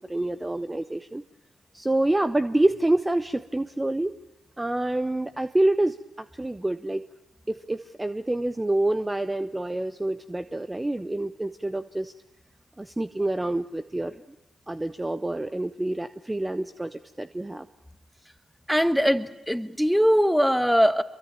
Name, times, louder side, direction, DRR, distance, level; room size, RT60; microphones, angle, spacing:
voice 1, 0.1-1.2 1.7-4.1 4.6-7.0 7.5-12.1 12.8-14.2 14.7-17.7, right 1 dB, 15° right, 11 dB, 0.9 m, -27 dB
voice 2, 18.7-21.0, equal, ahead, 12 dB, 1.6 m, -21 dB
25.0 x 23.0 x 8.8 m, 0.97 s
hypercardioid pair, 45°, 0 cm